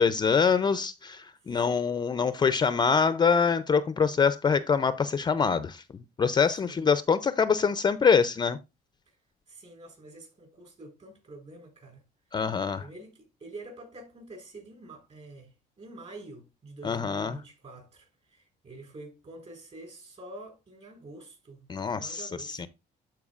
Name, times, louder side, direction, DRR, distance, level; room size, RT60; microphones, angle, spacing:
voice 1, 0.0-5.8 6.2-8.6 12.3-12.9 16.8-17.4 21.7-22.7, left 6 dB, 25° left, 0.4 m, -25 dB
voice 2, 1.5-2.0 6.6-6.9 9.5-12.0 12.8-22.7, right 2 dB, 40° right, 4.8 m, -47 dB
12.0 x 4.5 x 2.4 m
cardioid pair, 110°, 17 cm